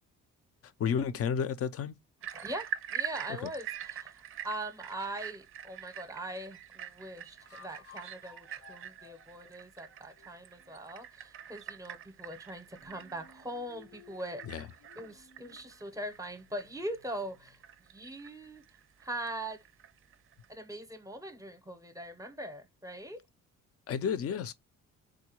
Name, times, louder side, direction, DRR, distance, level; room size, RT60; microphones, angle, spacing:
voice 1, 0.8-2.0 3.3-3.4 14.5-14.7 23.9-24.5, left 7 dB, 50° left, 0.5 m, -31 dB
sound 1, 2.2-20.5, right 10 dB, 45° right, 0.4 m, -45 dB
voice 2, 2.3-14.4 15.0-17.6 17.9-18.6 19.0-19.6 20.5-23.2, right 1 dB, 10° right, 0.7 m, -41 dB
sound 2, 5.1-5.2 7.4-10.8 12.8-17.6, left 7 dB, 90° left, 0.8 m, -58 dB
3.6 x 2.2 x 2.9 m
cardioid pair, 90°, 30 cm